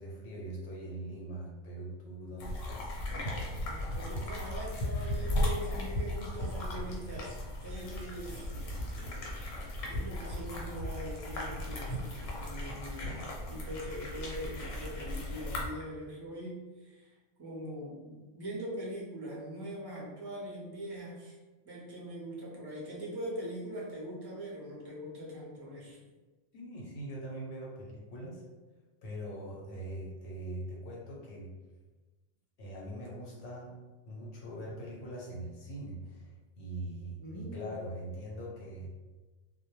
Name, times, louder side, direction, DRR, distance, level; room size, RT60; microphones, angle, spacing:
voice 1, 0.0-2.9 26.5-28.4 29.0-31.5 32.6-33.7 34.1-38.9, right 1 dB, 70° left, -3 dB, 0.8 m, -42 dB
sound 1, 2.4-15.7, left 1 dB, 85° left, 1.0 m, -36 dB
voice 2, 3.6-9.4 9.8-17.1 17.4-21.4 21.6-26.0 37.2-37.6, equal, 35° right, -5 dB, 0.4 m, -42 dB
2.1 x 2.1 x 2.9 m, 1.2 s
omnidirectional pair, 1.3 m